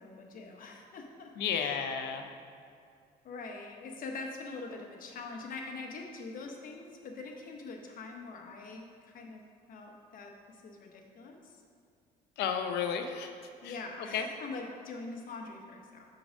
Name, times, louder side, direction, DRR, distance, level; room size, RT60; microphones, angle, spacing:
voice 1, 0.0-1.8 3.2-9.4 9.7-11.6 13.6-16.1, left 3 dB, 55° left, 2 dB, 1.0 m, -44 dB
voice 2, 1.4-2.3 12.4-13.3 13.6-14.3, left 7 dB, 80° left, 5 dB, 0.6 m, -33 dB
6.1 x 3.8 x 6.2 m, 2.4 s
cardioid pair, 110°, 17 cm